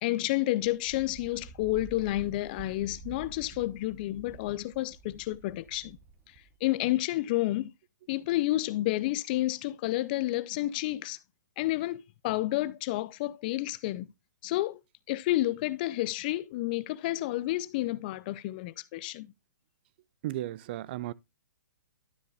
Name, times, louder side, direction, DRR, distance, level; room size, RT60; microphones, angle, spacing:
voice 1, 0.0-6.0 6.6-7.7 8.1-11.2 11.6-14.1 14.4-14.8 15.1-19.3, left 16 dB, 30° left, 0.5 m, -30 dB
Wind, 0.6-6.6, right 5 dB, 20° right, 0.9 m, -49 dB
voice 2, 20.2-21.1, right 15 dB, 35° right, 0.5 m, -35 dB
12.5 x 6.8 x 2.4 m
hypercardioid pair, 160°, 10 cm